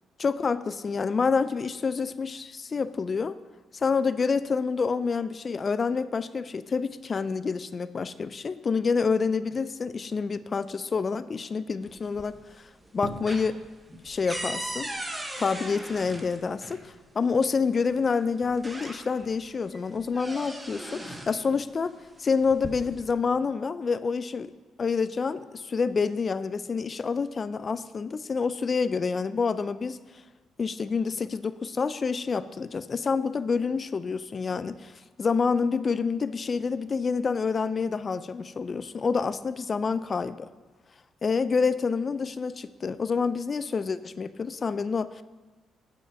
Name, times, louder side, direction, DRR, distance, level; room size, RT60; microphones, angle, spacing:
voice 1, 0.2-3.4 3.7-12.4 12.9-13.6 14.0-14.9 15.4-21.9 22.2-24.5 24.8-30.0 30.6-34.9 35.2-40.5 41.2-45.2, left 5 dB, 40° left, 15 dB, 0.3 m, -28 dB
sound 1, 11.9-12.5 12.8-16.8 17.9-18.0 18.4-19.4 19.7-21.4 22.3-23.1, right 1 dB, 15° right, 0.9 m, -38 dB
9.0 x 5.1 x 5.2 m, 1.3 s
cardioid pair, 90°, 0 cm